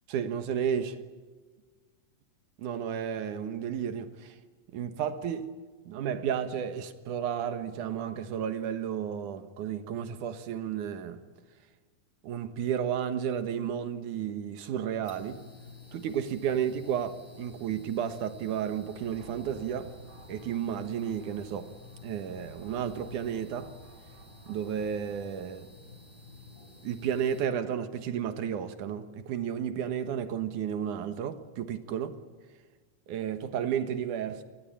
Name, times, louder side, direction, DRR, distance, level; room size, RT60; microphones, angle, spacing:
voice 1, 0.1-1.0 2.6-4.4 4.7-5.6 5.9-11.2 12.2-15.4 15.9-19.9 20.3-21.7 22.0-23.7 24.5-25.7 26.8-32.2 33.1-34.4, right 8 dB, 85° right, 2.9 m, -32 dB
sound 1, 15.0-27.5, left 3 dB, 25° left, 5.2 m, -51 dB
sound 2, 18.8-25.6, right 1 dB, 50° right, 8.1 m, -54 dB
29.0 x 20.0 x 8.8 m
omnidirectional pair, 3.5 m